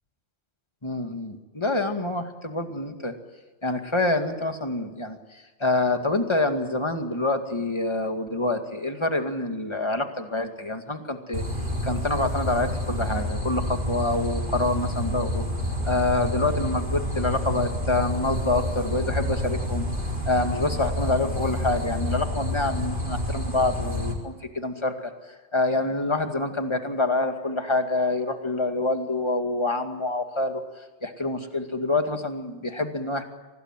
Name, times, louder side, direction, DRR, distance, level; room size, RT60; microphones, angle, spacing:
voice 1, 0.8-3.2 3.6-15.4 15.8-19.9 20.3-33.2, left 2 dB, 20° left, 5 dB, 2.2 m, -27 dB
sound 1, 11.3-24.1, left 1 dB, 40° right, 5.0 m, -29 dB
24.5 x 19.0 x 9.1 m, 1.2 s
omnidirectional pair, 1.3 m